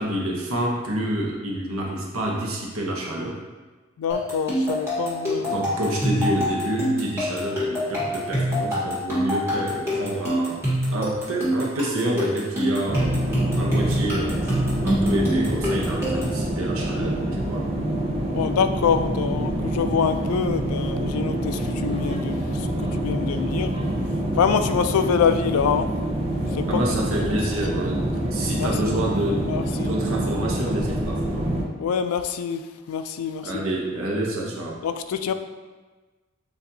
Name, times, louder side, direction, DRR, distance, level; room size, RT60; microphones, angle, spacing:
voice 1, 0.0-3.4 5.4-10.6 10.9-14.5 14.8-17.7 21.3-21.4 26.7-31.5 33.4-34.8, right 1 dB, 75° right, -2 dB, 0.9 m, -28 dB
voice 2, 4.0-5.6 18.3-23.7 24.4-25.9 26.5-27.3 28.6-28.9 29.5-29.9 31.8-33.5 34.8-35.3, left 6 dB, 85° left, 10 dB, 0.3 m, -25 dB
sound 1, 4.1-16.4, equal, 10° right, 1.3 m, -25 dB
sound 2, 12.9-31.6, right 1 dB, 25° right, 0.6 m, -26 dB
6.8 x 2.6 x 2.7 m, 1.3 s
head